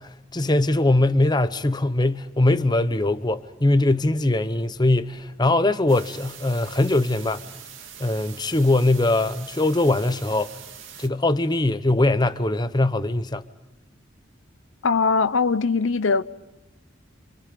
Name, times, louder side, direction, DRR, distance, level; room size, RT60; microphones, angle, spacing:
voice 1, 0.0-7.4 8.0-10.5 11.0-13.4, left 2 dB, 20° left, 0.8 m, -21 dB
sound 1, 5.9-11.1, right 8 dB, 85° right, 2.3 m, -43 dB
voice 2, 14.8-16.2, left 4 dB, 85° left, 0.8 m, -21 dB
27.5 x 27.0 x 5.4 m
head